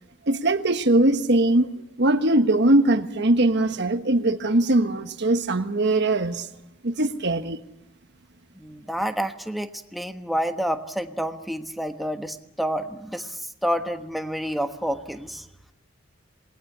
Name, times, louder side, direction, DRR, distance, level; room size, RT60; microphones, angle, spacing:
voice 1, 0.3-1.7 2.0-6.5 6.8-7.6, right 2 dB, 55° right, 1.3 m, -21 dB
voice 2, 8.5-15.5, equal, ahead, 1.3 m, -29 dB
27.5 x 20.0 x 8.5 m
head